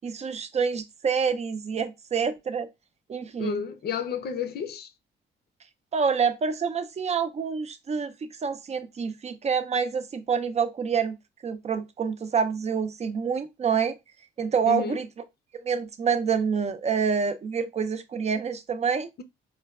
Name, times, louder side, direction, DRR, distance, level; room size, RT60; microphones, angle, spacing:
voice 1, 0.0-2.7 3.1-3.6 5.9-11.2 11.4-14.0 14.4-15.1 15.5-19.1, right 6 dB, 35° right, 0.5 m, -27 dB
voice 2, 3.4-4.9 14.6-15.0, left 8 dB, 55° left, 0.5 m, -31 dB
4.4 x 2.2 x 2.3 m
cardioid pair, 90°, 20 cm